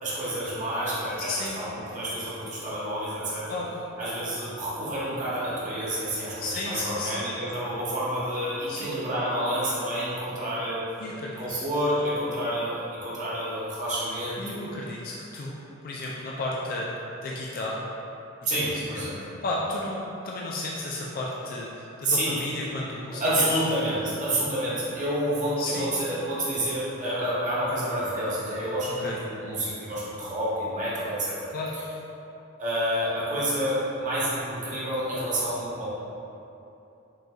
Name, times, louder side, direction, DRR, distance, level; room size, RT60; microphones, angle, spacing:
voice 1, 0.0-3.5 4.0-10.9 11.4-14.7 18.4-19.1 22.0-22.5 23.2-31.4 32.6-35.9, right 1 dB, 35° right, -8 dB, 1.0 m, -29 dB
voice 2, 1.2-1.6 3.5-3.7 6.4-7.2 8.7-8.9 9.6-9.7 11.0-11.6 14.4-15.6 15.8-16.9 17.2-17.9 18.7-18.9 19.4-23.6 25.6-25.9 29.0-29.2 31.5-31.7, left 2 dB, 45° left, -4 dB, 0.3 m, -33 dB
6.1 x 2.6 x 2.3 m, 2.8 s
head